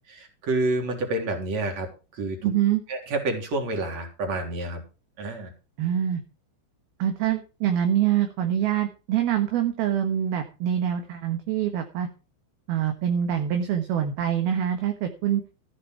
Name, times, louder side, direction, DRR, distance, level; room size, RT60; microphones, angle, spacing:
voice 1, 0.1-2.5 2.9-4.8 5.2-5.5, right 2 dB, 35° right, 3 dB, 4.3 m, -29 dB
voice 2, 2.4-2.8 5.8-6.2 7.0-12.1 12.7-15.4, right 10 dB, 65° right, 5 dB, 2.9 m, -25 dB
14.5 x 10.0 x 4.6 m, 0.32 s
omnidirectional pair, 5.5 m